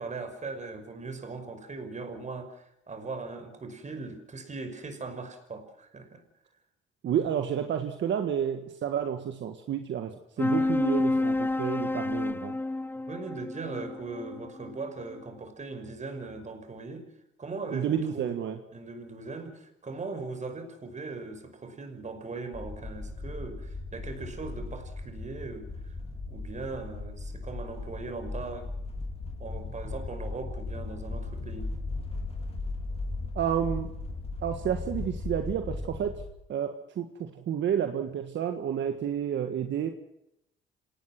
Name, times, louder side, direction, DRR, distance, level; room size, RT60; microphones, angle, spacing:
voice 1, 0.0-6.2 10.4-10.8 13.1-17.1 17.4-18.3 18.7-25.7 26.3-28.7 29.4-31.8, right 3 dB, 35° right, 7 dB, 5.6 m, -39 dB
voice 2, 7.0-12.5 17.7-18.6 33.3-33.9 34.4-36.2 36.5-39.9, right 9 dB, 70° right, 6 dB, 1.7 m, -30 dB
sound 1, 10.4-15.2, left 2 dB, 10° left, 0.7 m, -30 dB
sound 2, 22.5-36.3, left 3 dB, 30° left, 4.8 m, -37 dB
27.5 x 18.5 x 6.1 m, 0.81 s
cardioid pair, 90°, 20 cm